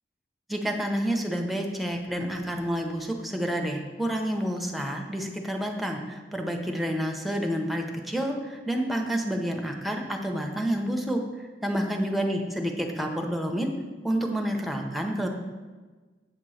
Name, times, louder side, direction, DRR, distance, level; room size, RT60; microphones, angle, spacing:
voice 1, 0.5-13.7 14.0-15.3, equal, ahead, 2 dB, 0.6 m, -29 dB
8.1 x 2.9 x 6.3 m, 1.3 s
head